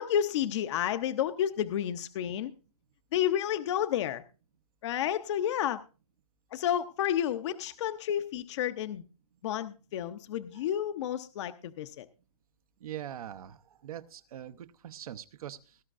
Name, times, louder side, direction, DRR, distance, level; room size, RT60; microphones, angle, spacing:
voice 1, 0.0-2.5 3.1-4.2 4.8-5.8 6.5-9.0 9.4-12.1, left 10 dB, 50° left, 10 dB, 0.6 m, -30 dB
voice 2, 12.8-15.8, right 11 dB, 75° right, 10 dB, 0.7 m, -43 dB
18.5 x 11.0 x 2.5 m, 0.34 s
hypercardioid pair, 155°, 19 cm